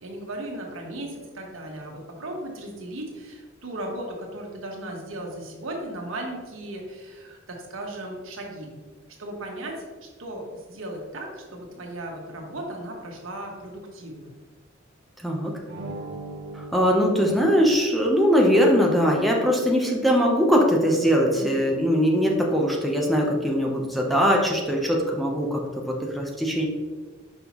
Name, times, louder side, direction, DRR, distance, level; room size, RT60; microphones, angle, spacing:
voice 1, 0.0-8.7 9.2-14.3 21.3-21.7, right 1 dB, 85° right, 0 dB, 1.3 m, -36 dB
sound 1, 15.7-18.4, right 2 dB, 60° right, 0.9 m, -40 dB
voice 2, 16.7-26.6, equal, ahead, -1 dB, 0.7 m, -21 dB
5.7 x 5.5 x 3.0 m, 1.4 s
head